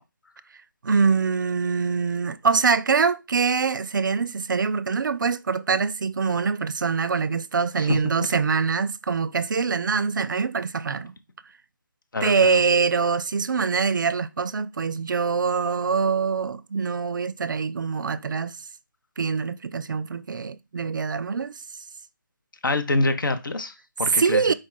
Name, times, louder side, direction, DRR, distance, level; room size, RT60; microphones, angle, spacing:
voice 1, 0.8-11.1 12.2-18.6 19.2-21.5 24.1-24.5, right 5 dB, 70° right, 0.4 m, -24 dB
voice 2, 12.1-12.6 22.6-24.4, left 2 dB, 75° left, 0.8 m, -26 dB
4.5 x 2.3 x 4.5 m
figure-of-eight pair, 165°, 11 cm